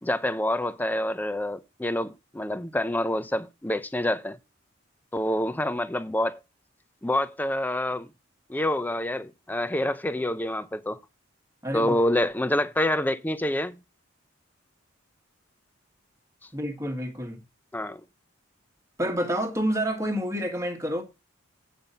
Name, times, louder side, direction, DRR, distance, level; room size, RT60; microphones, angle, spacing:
voice 1, 0.0-4.4 5.1-6.4 7.0-8.1 8.5-11.0 11.7-13.8 17.7-18.0, left 1 dB, 10° left, 0.4 m, -27 dB
voice 2, 11.6-11.9 16.5-17.4 19.0-21.0, equal, 15° right, 1.5 m, -28 dB
8.8 x 5.3 x 5.5 m
head